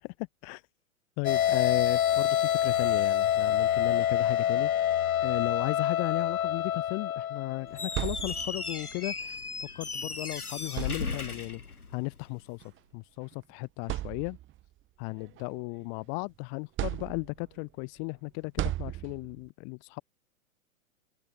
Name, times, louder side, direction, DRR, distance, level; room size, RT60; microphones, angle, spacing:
sound 1, 1.2-8.2, left 11 dB, 70° left, 0.9 m, -27 dB
voice 1, 1.2-4.9 5.2-11.6 11.9-12.6 12.9-14.4 15.0-20.0, left 40 dB or more, 35° left, 2.5 m, -35 dB
sound 2, 7.6-8.8 10.0-10.2 10.7-11.5 12.6-12.8 13.3-13.4 13.8-14.6 15.1-16.2 16.8-17.6 18.6-19.5, right 15 dB, 25° right, 5.5 m, -36 dB
Squeak, 7.7-12.3, left 4 dB, 85° left, 7.8 m, -37 dB
figure-of-eight pair, 115°, 43 cm